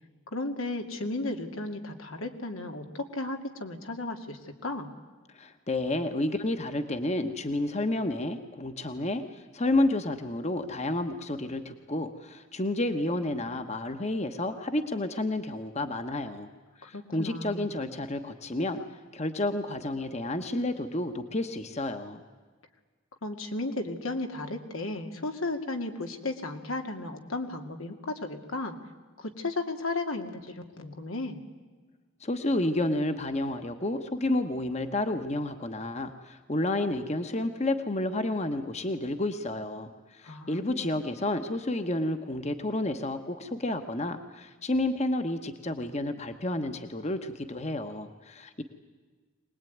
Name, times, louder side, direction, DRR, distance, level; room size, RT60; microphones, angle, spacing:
voice 1, 0.3-4.9 16.8-17.7 23.2-28.8 29.2-31.4 40.2-40.9, left 2 dB, 90° left, 5 dB, 2.3 m, -34 dB
voice 2, 5.3-16.5 16.8-18.8 19.1-22.2 32.2-48.6, left 1 dB, 35° left, 8 dB, 1.2 m, -30 dB
23.5 x 19.5 x 9.4 m, 1.4 s
head